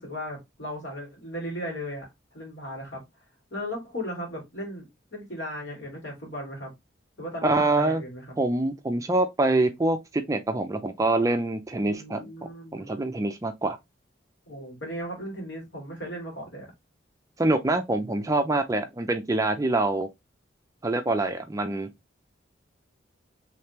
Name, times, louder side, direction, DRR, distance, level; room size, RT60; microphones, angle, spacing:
voice 1, 0.0-3.0 3.5-6.7 7.2-8.4 11.8-13.0 14.4-16.7, equal, 70° left, 2.2 m, -37 dB
voice 2, 7.4-8.0 8.4-12.2 12.7-13.8 17.4-20.1 20.8-21.9, right 2 dB, 15° right, 0.4 m, -25 dB
3.5 x 3.2 x 2.8 m
head